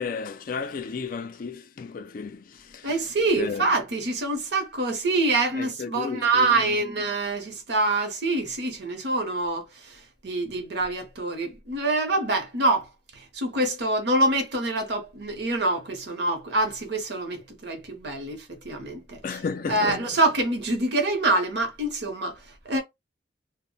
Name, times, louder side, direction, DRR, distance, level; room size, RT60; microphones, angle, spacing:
voice 1, 0.0-3.0 3.4-3.7 5.5-6.8 19.2-20.1, left 5 dB, 45° left, 0.3 m, -33 dB
voice 2, 2.8-12.9 13.1-19.2 19.7-22.4 22.7-22.8, right 2 dB, 60° right, 0.8 m, -26 dB
2.0 x 2.0 x 3.7 m
head